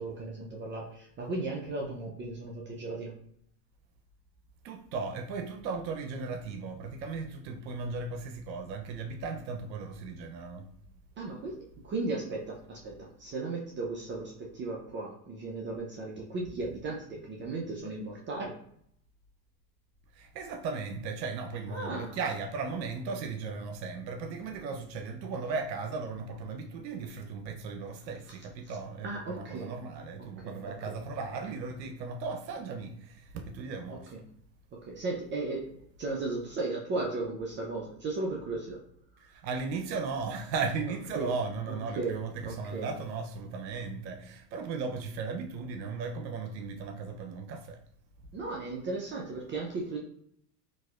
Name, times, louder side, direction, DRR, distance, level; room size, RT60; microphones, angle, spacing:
voice 1, 0.0-3.1 11.2-18.5 21.7-22.2 28.3-28.4 28.7-28.8 29.0-29.7 30.2-30.9 33.9-34.2 34.7-35.7 36.0-38.8 41.1-41.3 41.7-42.2 42.4-42.9 48.3-50.0, right 3 dB, 25° right, 0.5 m, -36 dB
voice 2, 4.6-10.7 20.1-34.1 39.2-47.8, right 4 dB, 90° right, 0.7 m, -36 dB
4.0 x 2.7 x 2.3 m
hypercardioid pair, 105°, 50 cm